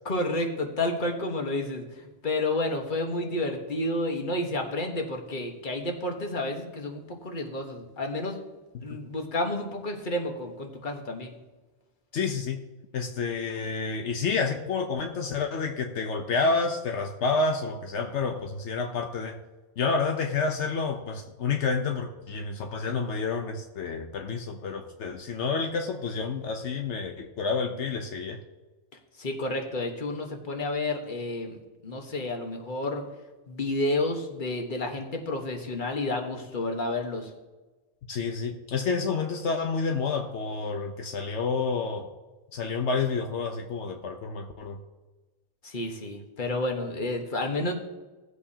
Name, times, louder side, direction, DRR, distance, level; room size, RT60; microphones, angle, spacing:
voice 1, 0.0-1.8 2.2-8.4 8.8-11.3 29.2-31.6 31.8-33.0 33.5-37.3 45.6-47.7, left 2 dB, 45° left, 3 dB, 1.5 m, -30 dB
voice 2, 12.1-12.6 12.9-19.4 19.8-28.4 38.1-42.1 42.5-44.8, left 4 dB, 80° left, 4 dB, 1.1 m, -29 dB
17.5 x 8.1 x 2.8 m, 1.2 s
omnidirectional pair, 1.2 m